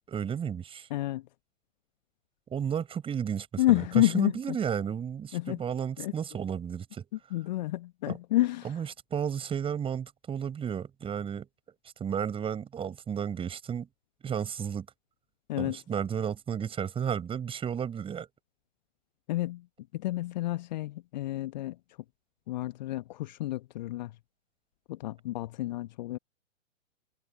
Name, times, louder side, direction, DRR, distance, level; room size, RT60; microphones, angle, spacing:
voice 1, 0.1-0.9 2.5-7.0 8.1-8.2 8.6-11.5 12.0-13.9 14.2-14.9 15.6-18.3, right 8 dB, 15° right, 7.6 m, -33 dB
voice 2, 0.9-1.3 3.6-4.6 5.3-5.6 6.0-6.1 7.3-8.8 15.5-15.8 19.3-19.7 19.9-21.8 22.5-24.2 24.9-26.2, left 16 dB, 35° left, 1.2 m, -29 dB
figure-of-eight pair, 125°, 40 cm